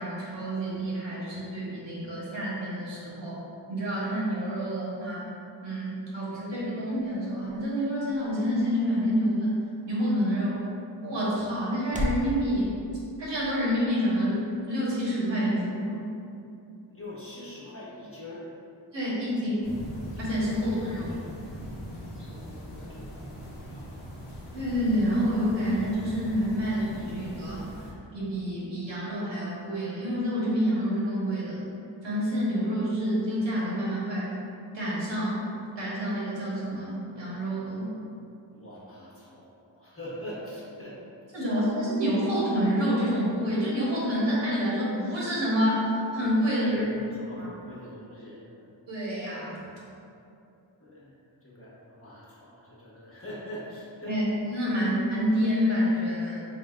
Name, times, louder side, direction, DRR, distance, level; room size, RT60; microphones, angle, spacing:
voice 1, 0.0-3.4 3.7-5.3 5.6-9.6 9.9-10.6 11.0-12.7 13.2-16.0 18.9-19.6 20.2-21.1 24.5-27.8 28.1-31.7 32.0-34.3 34.7-35.5 35.8-37.9 41.3-46.9 47.3-47.5 48.9-49.6 54.0-54.2 54.5-56.4, equal, 70° right, -7 dB, 1.2 m, -28 dB
sound 1, 6.0-12.3, equal, 20° right, 0.4 m, -40 dB
voice 2, 16.9-18.5 22.3-23.9 38.5-41.0 41.3-41.4 46.7-48.5 50.8-51.2 51.4-54.1, equal, 30° left, -8 dB, 1.0 m, -43 dB
sound 2, 19.6-27.9, equal, 65° left, 0.9 m, -41 dB
4.0 x 3.2 x 2.4 m, 2.6 s
wide cardioid pair, 75°, 45 cm